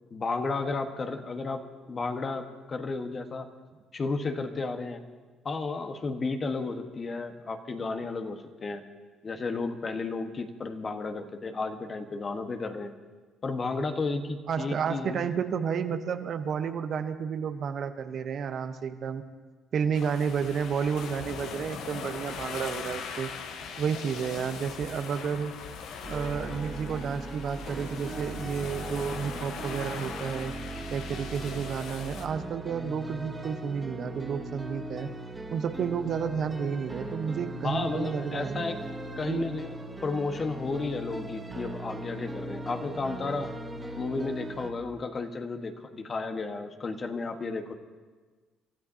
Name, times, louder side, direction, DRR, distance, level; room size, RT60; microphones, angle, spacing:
voice 1, 0.1-1.6 1.9-3.5 3.9-5.0 5.4-8.8 9.2-12.9 13.4-15.3 37.6-38.8 39.2-39.7 40.0-43.5 44.0-47.7, left 3 dB, 40° left, 6 dB, 1.4 m, -33 dB
voice 2, 14.5-19.2 19.7-23.3 23.8-25.5 26.1-30.5 30.9-35.1 35.5-38.7 39.3-39.5, right 7 dB, 55° right, 8 dB, 1.0 m, -31 dB
sound 1, 19.9-32.3, left 6 dB, 75° left, 1.1 m, -40 dB
sound 2, 26.0-44.7, right 1 dB, 15° right, 1.9 m, -39 dB
29.0 x 13.0 x 2.8 m, 1.4 s
hypercardioid pair, 60°, 0 cm